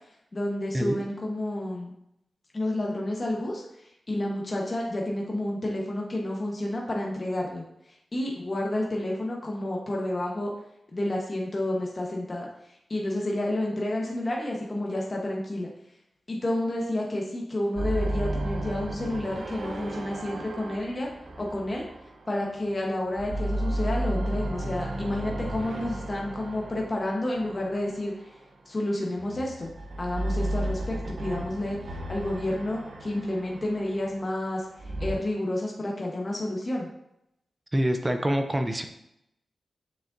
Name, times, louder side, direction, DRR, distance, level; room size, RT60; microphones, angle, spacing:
voice 1, 0.3-1.9 2.5-7.6 8.1-10.5 10.9-12.5 12.9-15.7 16.3-21.1 21.4-21.8 22.3-28.1 28.7-29.7 30.0-34.7 35.0-36.9, left 1 dB, 30° left, -2 dB, 1.1 m, -30 dB
sound 1, 17.8-22.7 23.1-28.4 29.1-35.2, right 1 dB, 65° right, 0.8 m, -33 dB
voice 2, 37.7-38.8, equal, 15° right, 6 dB, 0.6 m, -26 dB
7.2 x 6.3 x 2.6 m, 0.80 s
wide cardioid pair, 135°, 0 cm